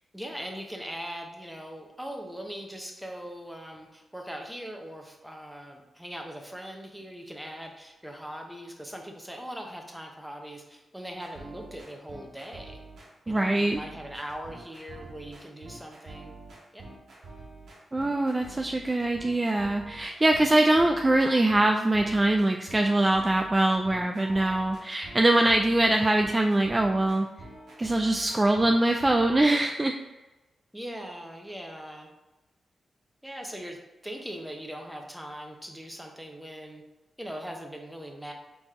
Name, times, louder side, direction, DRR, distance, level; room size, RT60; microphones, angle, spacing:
voice 1, 0.1-12.8 13.3-16.4 16.7-16.9 30.7-32.1 33.2-36.8 37.2-38.3, equal, 5° right, 2 dB, 0.9 m, -40 dB
sound 1, 11.1-29.6, right 2 dB, 75° right, 1.2 m, -46 dB
voice 2, 13.3-13.8 17.9-27.3 27.8-30.0, right 1 dB, 25° right, 3 dB, 0.3 m, -23 dB
4.1 x 3.4 x 3.6 m, 1.1 s
cardioid pair, 55°, 0 cm